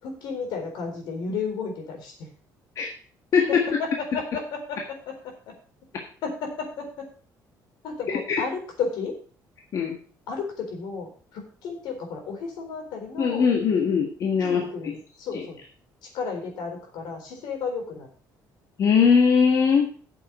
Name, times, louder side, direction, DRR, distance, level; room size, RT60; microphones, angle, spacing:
voice 1, 0.0-2.3 3.5-5.5 6.2-7.1 7.8-9.2 10.3-13.5 14.4-15.6 16.1-18.1, left 5 dB, 75° left, 3 dB, 4.0 m, -33 dB
voice 2, 3.3-3.7 8.1-8.4 9.7-10.0 13.2-14.7 15.3-15.4 18.8-19.9, left 6 dB, 45° left, 1 dB, 1.7 m, -20 dB
8.8 x 7.2 x 6.0 m, 0.41 s
cardioid pair, 160°, 8 cm